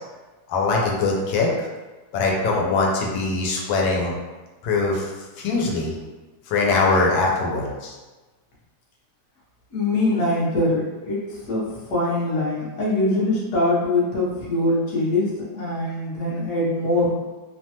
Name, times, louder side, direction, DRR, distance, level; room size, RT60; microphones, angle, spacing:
voice 1, 0.5-1.7 2.1-4.1 4.6-5.1 5.4-5.9 6.5-7.9, left 3 dB, 85° left, -1 dB, 1.3 m, -22 dB
voice 2, 9.7-17.1, left 2 dB, 55° left, -5 dB, 0.9 m, -23 dB
3.1 x 2.2 x 2.8 m, 1.2 s
omnidirectional pair, 2.1 m